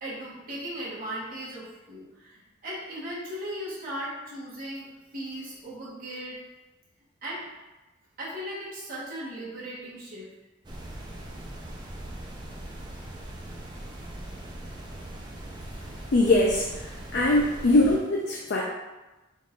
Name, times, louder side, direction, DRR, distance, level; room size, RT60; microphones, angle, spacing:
voice 1, 0.0-4.9 5.1-6.4 7.2-7.5 8.2-10.3, equal, 45° right, -8 dB, 1.2 m, -37 dB
sound 1, 10.6-18.0, right 1 dB, 20° right, 0.4 m, -40 dB
voice 2, 16.1-18.6, left 2 dB, 55° left, -1 dB, 0.4 m, -22 dB
4.0 x 2.5 x 3.7 m, 1.1 s
head